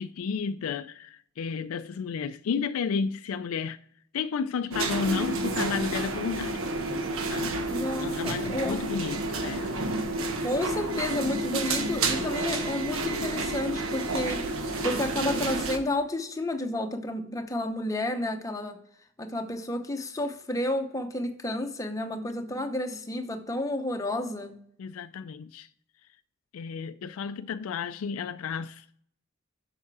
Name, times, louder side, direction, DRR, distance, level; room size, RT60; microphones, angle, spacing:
voice 1, 0.0-3.8 4.1-6.6 7.3-7.6 8.0-9.7 24.8-25.7 26.5-28.8, left 6 dB, 90° left, 0.4 m, -32 dB
sound 1, 4.7-15.8, right 2 dB, 90° right, 1.2 m, -30 dB
voice 2, 7.7-8.8 10.4-18.8 19.2-24.6, left 1 dB, 15° left, 0.8 m, -31 dB
7.1 x 5.7 x 4.7 m
head